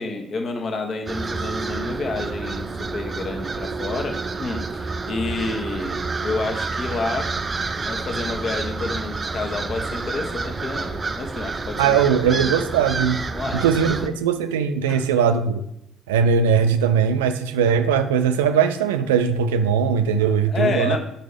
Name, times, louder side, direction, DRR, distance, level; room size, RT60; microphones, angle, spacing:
voice 1, 0.0-7.3 7.8-12.0 12.3-12.5 13.3-14.1 14.9-15.1 20.5-21.0, left 3 dB, 45° left, 3 dB, 1.3 m, -29 dB
sound 1, 1.1-14.1, right 4 dB, 30° right, 0.6 m, -29 dB
voice 2, 11.8-13.2 13.5-15.6 16.1-21.0, right 7 dB, 80° right, 9 dB, 0.5 m, -20 dB
5.8 x 5.3 x 6.4 m, 0.78 s
figure-of-eight pair, 45°, 0 cm